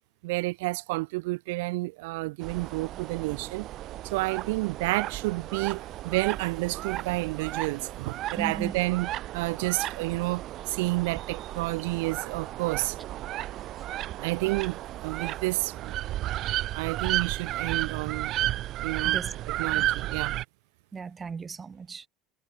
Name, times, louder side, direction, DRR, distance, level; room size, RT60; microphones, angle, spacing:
voice 1, 0.2-3.7 4.0-13.0 14.2-16.0 16.7-18.4 18.8-19.2 19.5-20.3, right 23 dB, 60° right, 1.3 m, -30 dB
sound 1, 2.4-20.4, right 14 dB, 45° right, 4.8 m, -33 dB
voice 2, 8.4-8.8 13.6-13.7 19.0-19.3 19.6-19.9 20.9-22.1, right 5 dB, 20° right, 6.1 m, -37 dB
figure-of-eight pair, 75°, 0 cm